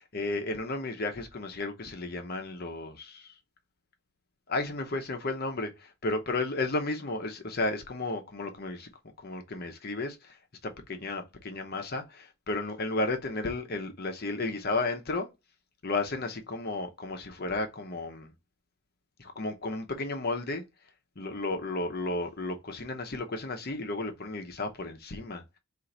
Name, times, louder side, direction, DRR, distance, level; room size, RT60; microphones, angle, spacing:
voice 1, 0.0-3.3 4.5-8.9 9.2-15.3 15.8-18.3 19.2-20.6 21.2-25.4, left 2 dB, 45° left, 0.7 m, -33 dB
4.5 x 2.5 x 3.9 m
head